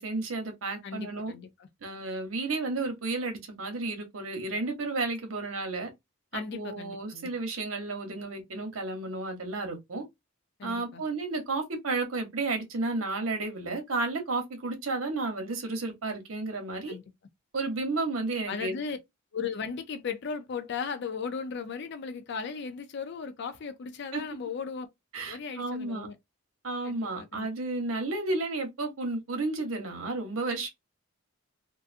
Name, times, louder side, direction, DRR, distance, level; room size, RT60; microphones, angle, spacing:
voice 1, 0.0-1.3 1.8-5.9 6.3-10.0 10.6-17.0 17.5-18.8 24.1-24.2 25.1-26.1 26.6-30.7, right 3 dB, 80° right, 0.9 m, -32 dB
voice 2, 0.8-1.7 6.3-7.3 10.6-11.0 16.9-17.0 18.5-19.0 19.3-24.9 25.2-26.2 26.8-27.5, left 5 dB, 55° left, 0.4 m, -36 dB
2.5 x 2.3 x 2.5 m
head